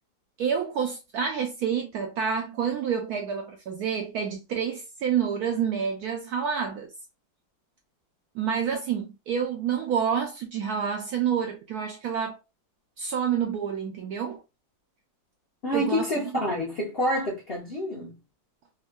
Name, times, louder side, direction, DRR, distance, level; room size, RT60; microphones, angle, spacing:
voice 1, 0.4-6.9 8.3-12.4 13.0-14.4 15.7-16.1, right 7 dB, 75° right, 0.9 m, -28 dB
voice 2, 15.6-18.2, left 1 dB, 55° left, 0.7 m, -28 dB
3.6 x 2.1 x 2.4 m
omnidirectional pair, 2.1 m